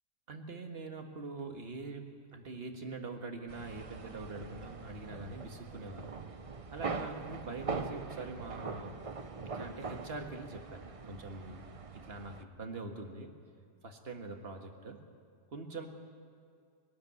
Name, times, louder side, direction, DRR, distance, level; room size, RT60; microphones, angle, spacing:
voice 1, 0.3-6.2 6.7-8.9 9.4-11.6 11.9-13.3 13.8-15.0 15.5-15.9, right 3 dB, 35° right, 4 dB, 1.8 m, -44 dB
sound 1, 3.5-12.4, right 4 dB, 55° right, 0.3 m, -42 dB
22.5 x 12.5 x 9.6 m, 2.3 s
omnidirectional pair, 1.8 m